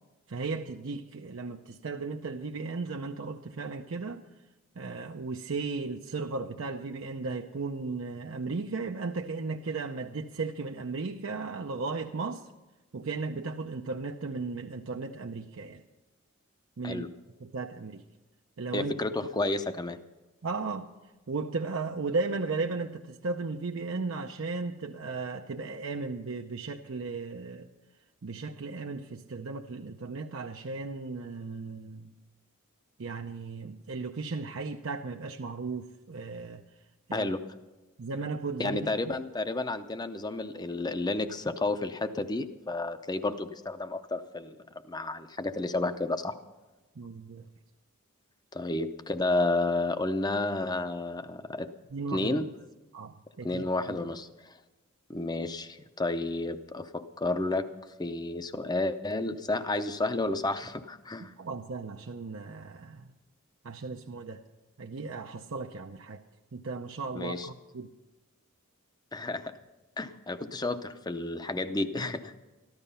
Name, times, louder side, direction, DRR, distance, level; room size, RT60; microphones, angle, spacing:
voice 1, 0.3-4.2 4.8-12.5 12.9-15.8 16.8-17.1 17.4-18.0 18.6-18.9 20.4-20.9 21.3-27.7 28.2-32.1 33.0-36.6 37.1-37.3 38.0-38.9 47.0-47.5 51.9-52.4 52.9-54.0 61.2-63.1 63.6-64.4 64.8-66.2 66.5-67.9, right 4 dB, 65° right, 2 dB, 0.6 m, -35 dB
voice 2, 18.7-20.0 37.1-37.4 38.6-44.6 44.9-46.4 48.5-51.7 52.1-52.5 53.4-54.5 55.1-61.3 67.1-67.5 69.1-69.5 70.0-72.3, left 2 dB, 20° left, 10 dB, 0.6 m, -31 dB
14.0 x 12.0 x 5.5 m, 1.1 s
head